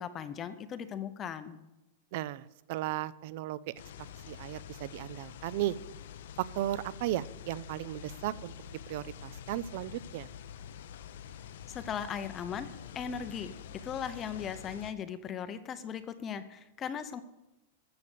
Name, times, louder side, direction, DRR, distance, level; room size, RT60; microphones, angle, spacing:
voice 1, 0.0-1.6 11.7-12.7 12.9-13.5 13.8-17.2, left 8 dB, 15° left, 11 dB, 0.6 m, -38 dB
voice 2, 2.1-3.7 4.3-5.8 6.4-8.5 8.9-10.3, right 14 dB, 40° right, 19 dB, 0.4 m, -35 dB
sound 1, 3.8-14.9, left 9 dB, 60° left, 0.6 m, -47 dB
sound 2, 7.2-12.1 12.7-14.9, left 3 dB, 90° left, 2.4 m, -58 dB
14.5 x 6.7 x 6.8 m, 0.95 s
supercardioid pair, 180°, 0 cm